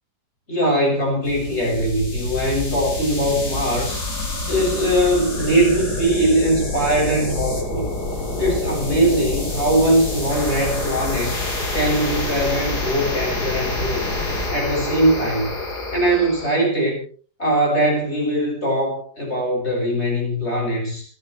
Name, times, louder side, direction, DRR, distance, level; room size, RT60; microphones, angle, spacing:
voice 1, 0.5-4.0 4.5-7.9 8.4-11.4 11.7-14.0 14.3-15.5 15.9-17.0 17.4-21.0, right 1 dB, 40° left, 0 dB, 8.1 m, -21 dB
sound 1, 1.2-16.6, left 2 dB, 70° left, 4.8 m, -27 dB
28.5 x 13.0 x 3.3 m, 0.41 s
omnidirectional pair, 1.7 m